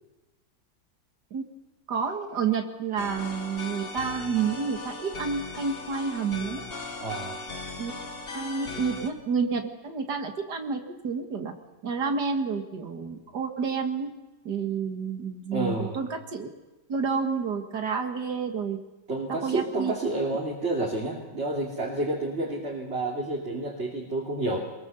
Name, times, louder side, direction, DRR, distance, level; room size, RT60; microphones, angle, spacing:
voice 1, 1.9-6.7 7.8-7.9 8.3-11.5 11.8-14.1 14.5-16.5 16.9-18.8 19.3-19.9, right 5 dB, 70° right, 5 dB, 2.3 m, -29 dB
sound 1, 3.0-9.1, left 3 dB, 35° left, 1.7 m, -38 dB
voice 2, 7.0-7.4 15.5-16.0 19.1-24.6, right 2 dB, 40° right, -3 dB, 3.1 m, -29 dB
22.0 x 22.0 x 6.9 m, 1.1 s
omnidirectional pair, 1.9 m